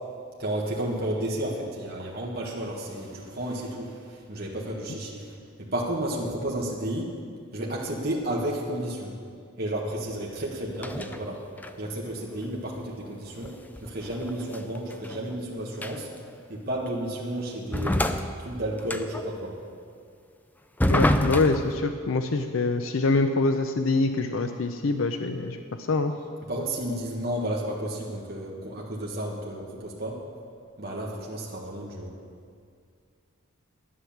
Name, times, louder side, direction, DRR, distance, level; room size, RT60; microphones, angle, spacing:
voice 1, 0.4-5.2 5.6-7.1 7.5-9.2 9.6-11.4 11.8-13.5 13.8-16.1 16.5-19.5 26.5-30.2 30.8-32.2, right 1 dB, 45° right, -4 dB, 1.7 m, -32 dB
sound 1, 10.8-11.2 11.6-11.9 13.4-15.4 15.8-16.2 16.9-17.0 17.7-19.3 20.8-21.8, left 1 dB, 10° left, 0.4 m, -27 dB
voice 2, 20.9-25.6 25.9-26.1, left 3 dB, 75° left, 7 dB, 0.6 m, -25 dB
11.0 x 10.0 x 7.2 m, 2.3 s
head